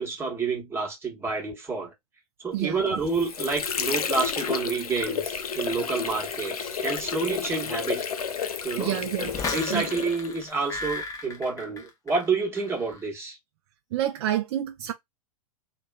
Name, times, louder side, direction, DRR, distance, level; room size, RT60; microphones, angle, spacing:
voice 1, 0.0-1.9 2.4-8.0 8.6-9.0 9.4-13.4, right 4 dB, 15° right, 1.1 m, -29 dB
voice 2, 2.5-3.0 8.8-9.3 9.7-9.8 13.9-14.9, right 12 dB, 45° right, 0.4 m, -28 dB
Water / Sink (filling or washing), 2.8-10.5, left 7 dB, 80° left, 0.4 m, -31 dB
sound 1, 9.2-12.3 12.6-13.0, left 3 dB, 20° left, 0.6 m, -35 dB
2.7 x 2.2 x 2.2 m
figure-of-eight pair, 105°, 19 cm